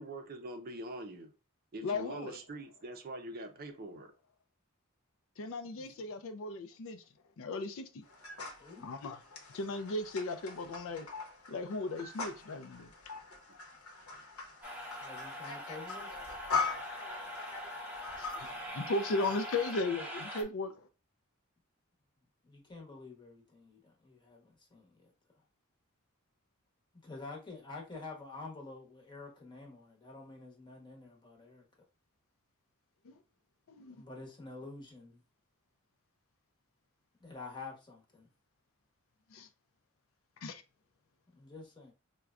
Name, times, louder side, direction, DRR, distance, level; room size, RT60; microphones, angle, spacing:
voice 1, 0.0-1.3 1.7-4.1, right 1 dB, 45° right, 0.5 m, -44 dB
voice 2, 1.8-2.4 5.4-7.0 7.4-8.0 8.8-9.2 9.5-11.1 11.5-12.9 18.1-20.9 33.0-33.2 33.7-34.0 39.3-39.5 40.4-40.6, left 3 dB, 65° left, 0.4 m, -36 dB
sound 1, 8.0-18.7, left 4 dB, 85° left, 0.9 m, -41 dB
sound 2, 14.6-20.4, equal, 10° right, 0.7 m, -43 dB
voice 3, 15.0-16.1 22.4-25.1 27.0-31.6 33.9-35.2 37.2-38.3 41.3-41.9, left 3 dB, 20° left, 1.0 m, -48 dB
4.6 x 2.2 x 2.4 m
head